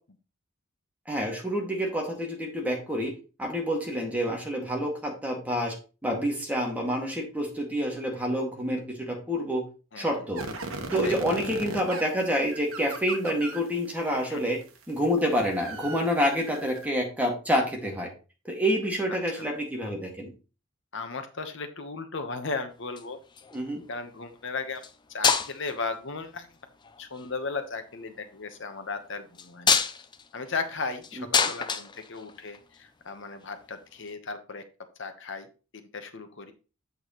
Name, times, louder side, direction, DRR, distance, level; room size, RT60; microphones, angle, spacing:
voice 1, 1.1-3.1 3.4-5.7 6.0-9.6 10.0-10.4 10.9-14.6 14.9-18.1 18.5-20.3 23.5-23.8 31.2-31.3, equal, 10° right, 0 dB, 2.0 m, -28 dB
voice 2, 9.9-10.3 11.0-11.1 14.3-14.5 19.3-19.5 20.9-23.2 23.9-24.8 25.1-26.5 27.0-29.7 30.3-34.6 35.0-35.5 35.7-36.5, left 4 dB, 65° left, 8 dB, 1.1 m, -36 dB
sound 1, 10.4-13.9 14.4-16.9, right 3 dB, 85° right, 1.2 m, -37 dB
sound 2, 22.8-23.6 24.7-24.9 25.2-25.8 26.8-27.3 29.3-32.8 34.1-34.2, left 6 dB, 20° left, 0.5 m, -27 dB
8.2 x 6.3 x 3.1 m, 0.33 s
head